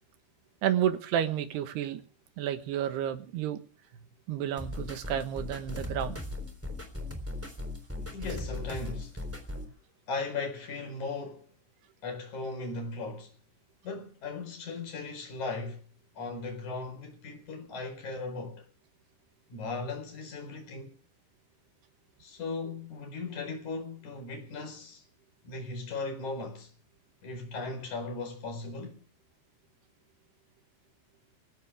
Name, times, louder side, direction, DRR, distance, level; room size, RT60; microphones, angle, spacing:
voice 1, 0.6-2.0 2.4-3.6 4.3-6.2, right 10 dB, 75° right, 3.4 m, -30 dB
sound 1, 4.6-9.6, left 2 dB, 5° right, 2.8 m, -38 dB
voice 2, 8.0-9.3 10.1-11.5 12.0-13.3 13.8-15.9 16.2-18.7 19.5-21.0 22.2-25.0 25.4-26.7 27.2-29.0, left 3 dB, 45° left, 5.9 m, -37 dB
21.0 x 17.0 x 3.6 m
omnidirectional pair, 4.9 m